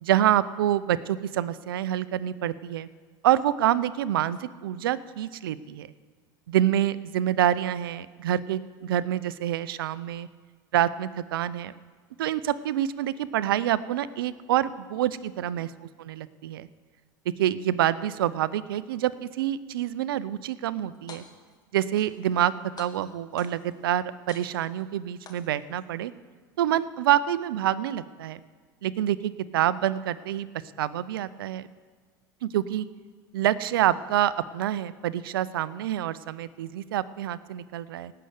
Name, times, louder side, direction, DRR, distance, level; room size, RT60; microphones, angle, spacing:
voice 1, 0.0-2.9 3.2-5.9 6.5-10.3 10.7-11.7 12.2-15.7 16.0-16.7 17.4-21.2 21.7-26.1 26.6-28.4 28.8-30.5 30.8-31.7 32.4-32.9 33.3-38.1, right 12 dB, 85° right, 17 dB, 0.5 m, -27 dB
sound 1, 20.9-21.6 22.0-22.5 22.8-23.8 24.3-24.8 25.3-25.8, left 5 dB, 35° left, 1.8 m, -48 dB
17.5 x 6.8 x 8.0 m, 1.5 s
hypercardioid pair, 90°, 11 cm